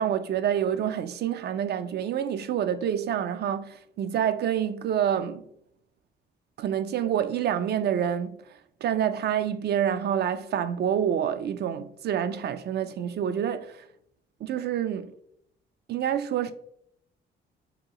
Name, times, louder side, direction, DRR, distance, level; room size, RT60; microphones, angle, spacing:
voice 1, 0.0-5.5 6.6-8.4 8.8-13.8 14.4-15.1 15.9-16.5, right 9 dB, 55° right, 0.4 m, -27 dB
2.9 x 2.8 x 3.7 m
cardioid pair, 90°, 20 cm